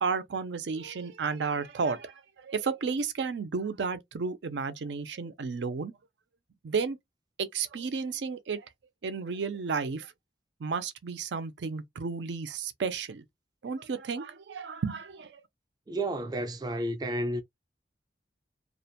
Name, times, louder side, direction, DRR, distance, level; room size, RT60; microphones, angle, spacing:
voice 1, 0.0-5.9 6.6-7.0 7.4-8.7 9.0-10.1 10.6-13.2 13.6-15.4, right 5 dB, 85° right, 0.5 m, -32 dB
voice 2, 15.9-17.4, right 1 dB, 25° right, 0.3 m, -31 dB
2.4 x 2.1 x 2.7 m
head